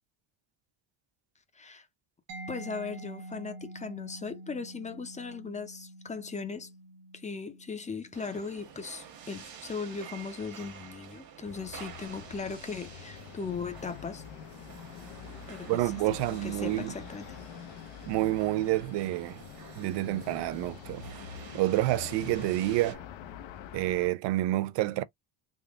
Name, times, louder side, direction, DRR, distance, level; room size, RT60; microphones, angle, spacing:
voice 1, 1.5-1.9 2.5-6.7 7.1-14.2 15.5-15.9 16.4-17.3, left 5 dB, 15° left, 0.6 m, -38 dB
Mallet percussion, 2.3-9.8, right 1 dB, 90° right, 1.2 m, -47 dB
sound 1, 8.1-22.9, right 8 dB, 50° right, 1.2 m, -49 dB
sound 2, 11.4-24.1, left 9 dB, 85° left, 0.8 m, -45 dB
voice 2, 15.7-16.9 18.1-19.4 19.8-21.1 21.5-23.0 23.7-25.0, right 16 dB, 65° right, 0.5 m, -28 dB
3.7 x 2.2 x 3.5 m
cardioid pair, 150°, 46 cm